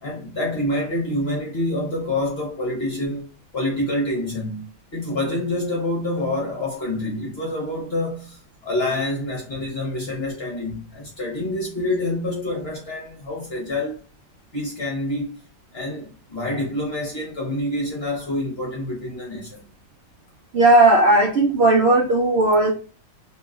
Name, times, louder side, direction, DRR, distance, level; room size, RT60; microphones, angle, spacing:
voice 1, 0.0-3.3 3.5-14.0 14.5-15.4 15.7-19.6, left 1 dB, 45° left, 0.8 m, -27 dB
voice 2, 20.5-22.7, right 2 dB, 85° right, 0.5 m, -16 dB
3.0 x 2.7 x 2.4 m
omnidirectional pair, 2.0 m